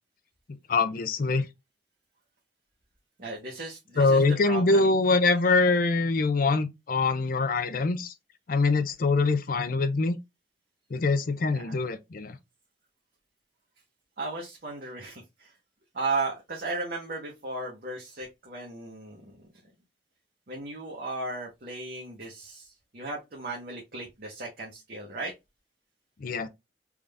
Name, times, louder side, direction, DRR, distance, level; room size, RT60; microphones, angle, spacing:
voice 1, 0.7-1.5 4.0-8.1 8.5-10.2 10.9-12.4 26.2-26.5, left 3 dB, 50° left, 0.5 m, -24 dB
voice 2, 3.2-4.9 11.5-11.8 14.2-15.5 15.9-19.3 20.5-25.3, right 3 dB, 50° right, 0.9 m, -35 dB
3.6 x 2.5 x 3.3 m
head